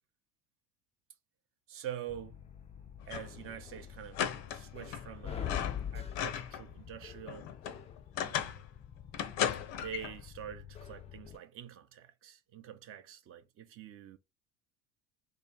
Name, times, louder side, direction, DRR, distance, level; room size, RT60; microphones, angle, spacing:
voice 1, 1.7-2.4 3.1-7.5 8.2-8.6 9.8-14.2, right 10 dB, 40° right, 0.6 m, -46 dB
sound 1, 2.1-11.4, left 9 dB, 20° left, 0.3 m, -45 dB
sound 2, 3.0-3.4 3.7-3.8 4.1-5.1 5.4-6.7 7.0-8.7 9.1-10.2, left 9 dB, 65° left, 0.6 m, -36 dB
3.0 x 2.0 x 3.6 m
hypercardioid pair, 70°, 33 cm